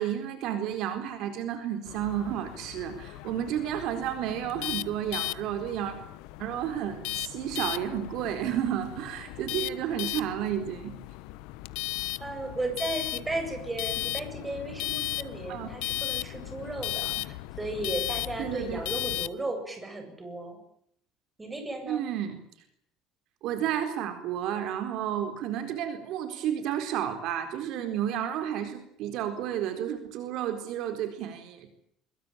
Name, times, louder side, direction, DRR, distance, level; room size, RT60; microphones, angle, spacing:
voice 1, 0.0-6.0 6.4-10.9 15.5-15.8 17.2-17.3 18.4-18.8 21.9-22.4 23.4-31.7, right 10 dB, 55° right, 7 dB, 4.2 m, -31 dB
sound 1, 1.9-19.3, left 21 dB, 85° left, 1.2 m, -36 dB
voice 2, 12.2-20.6 21.4-22.0, right 2 dB, 10° right, 5 dB, 7.7 m, -35 dB
25.0 x 23.5 x 8.8 m, 0.70 s
cardioid pair, 180°, 0 cm